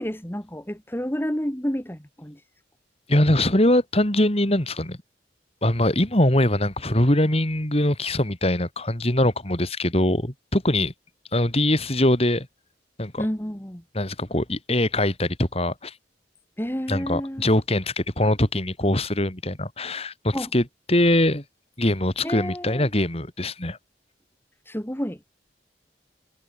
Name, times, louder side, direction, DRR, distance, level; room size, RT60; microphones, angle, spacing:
voice 1, 0.0-2.4 13.2-13.8 16.6-17.4 20.3-20.5 22.2-22.9 24.7-25.2, equal, 10° left, 2.1 m, -30 dB
voice 2, 3.1-5.0 5.6-10.9 11.3-12.5 13.0-13.3 13.9-15.9 16.9-21.4 21.8-23.8, left 1 dB, 35° left, 3.8 m, -22 dB
head